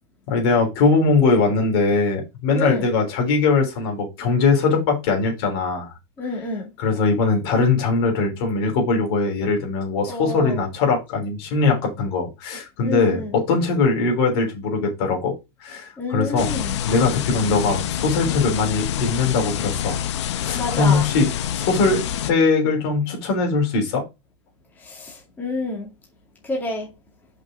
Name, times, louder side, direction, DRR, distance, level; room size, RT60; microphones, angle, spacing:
voice 1, 0.3-5.9 6.8-15.3 15.6-16.6 16.9-20.0 20.4-21.3 21.5-24.0, left 4 dB, 60° left, 3.7 m, -21 dB
voice 2, 2.5-2.9 6.2-6.7 10.1-10.6 12.8-13.3 16.0-16.7 20.5-21.1 24.8-25.9 26.4-26.9, left 2 dB, 10° left, 2.4 m, -28 dB
sound 1, 16.4-22.3, left 10 dB, 75° left, 0.8 m, -27 dB
5.7 x 5.4 x 5.0 m
supercardioid pair, 150°, 15 cm